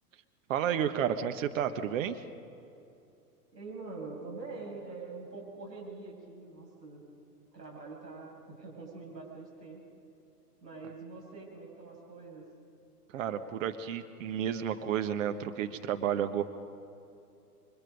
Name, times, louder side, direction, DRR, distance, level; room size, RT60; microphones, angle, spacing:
voice 1, 0.5-2.2 13.1-16.4, right 9 dB, 50° right, 8 dB, 1.5 m, -31 dB
voice 2, 3.5-7.0 7.5-9.8 10.6-12.4, right 3 dB, 90° right, -2 dB, 7.7 m, -44 dB
29.0 x 24.0 x 5.4 m, 2.7 s
figure-of-eight pair, 105°, 48 cm